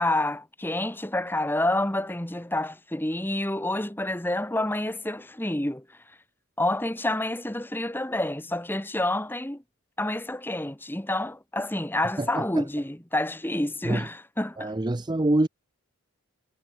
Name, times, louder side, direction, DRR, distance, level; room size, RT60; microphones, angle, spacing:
voice 1, 0.0-5.8 6.6-9.6 10.0-14.7, left 1 dB, 10° left, 1.1 m, -28 dB
voice 2, 12.2-12.6 13.8-14.1 14.6-15.5, right 1 dB, 20° right, 0.5 m, -25 dB
head